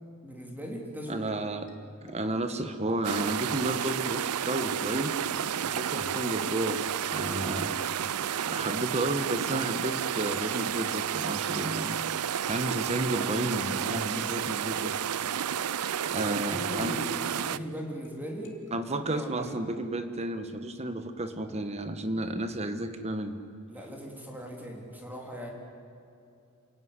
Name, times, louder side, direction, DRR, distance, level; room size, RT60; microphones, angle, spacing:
voice 1, 0.2-1.3 16.2-18.6 19.0-19.6 23.7-25.5, equal, 10° right, -1 dB, 3.7 m, -39 dB
sound 1, 0.7-19.9, left 2 dB, 55° left, 2.7 m, -53 dB
voice 2, 1.1-1.7 2.0-5.1 5.6-6.8 7.1-7.8 8.5-12.0 12.5-14.9 16.0-17.0 18.7-23.4, right 1 dB, 30° right, 9 dB, 1.5 m, -32 dB
sound 2, 3.0-17.6, right 9 dB, 85° right, 0.6 m, -31 dB
28.0 x 16.5 x 9.9 m, 2.6 s
head